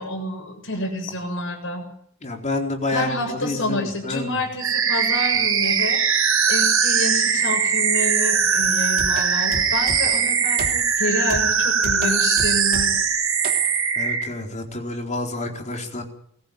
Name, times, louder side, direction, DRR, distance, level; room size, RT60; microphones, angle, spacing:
voice 1, 0.0-1.8 2.9-6.0 6.5-12.9, left 1 dB, 65° left, 4 dB, 7.5 m, -28 dB
voice 2, 2.2-4.4 13.9-16.0, left 2 dB, 35° left, 3 dB, 4.2 m, -28 dB
sound 1, 4.6-14.3, right 6 dB, 75° right, 6.0 m, -20 dB
sound 2, 8.6-10.3 10.6-11.0 11.3-13.1 13.4-13.7, right 1 dB, 45° right, 3.1 m, -34 dB
22.5 x 14.5 x 9.4 m, 0.65 s
head